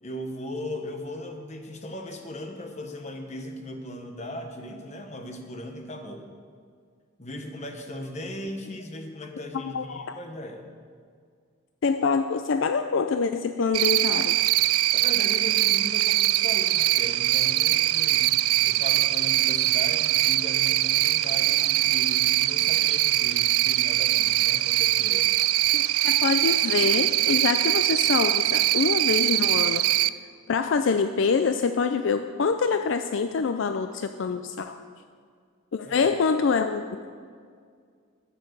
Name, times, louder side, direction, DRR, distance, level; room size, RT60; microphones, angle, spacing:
voice 1, 0.0-6.2 7.2-10.7 14.9-25.3 35.8-36.1, left 1 dB, 35° left, 4 dB, 1.1 m, -38 dB
voice 2, 9.6-10.1 11.8-14.4 25.7-29.8 30.5-34.8 35.7-37.1, left 5 dB, 60° left, 8 dB, 0.4 m, -25 dB
Cricket, 13.7-30.1, right 16 dB, 90° right, 0.3 m, -22 dB
12.0 x 7.4 x 6.6 m, 2.1 s
head